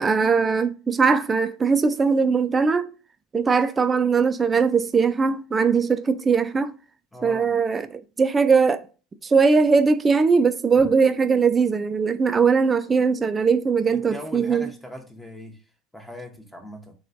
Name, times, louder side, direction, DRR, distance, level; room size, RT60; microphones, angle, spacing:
voice 1, 0.0-2.9 3.3-6.7 7.2-8.8 9.2-14.7, right 5 dB, 20° right, 0.3 m, -20 dB
voice 2, 7.1-7.5 13.9-15.6 15.9-16.9, equal, 5° left, 0.7 m, -40 dB
3.0 x 2.3 x 2.5 m
figure-of-eight pair, 70°, 0 cm